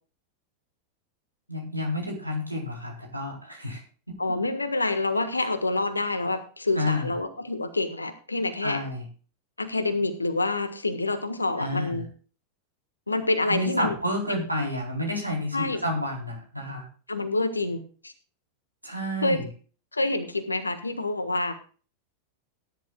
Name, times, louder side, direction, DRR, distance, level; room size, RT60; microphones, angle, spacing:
voice 1, 1.5-3.8 4.1-4.2 6.7-7.1 8.6-9.0 11.6-12.0 13.5-16.9 18.8-19.5, left 1 dB, 90° right, -1 dB, 3.9 m, -30 dB
voice 2, 4.2-8.8 9.6-12.1 13.1-14.0 14.3-14.4 15.5-15.8 17.1-18.1 19.2-19.4 19.9-21.5, left 2 dB, 80° left, 11 dB, 1.5 m, -27 dB
18.5 x 11.0 x 2.4 m, 0.38 s
figure-of-eight pair, 90°, 0 cm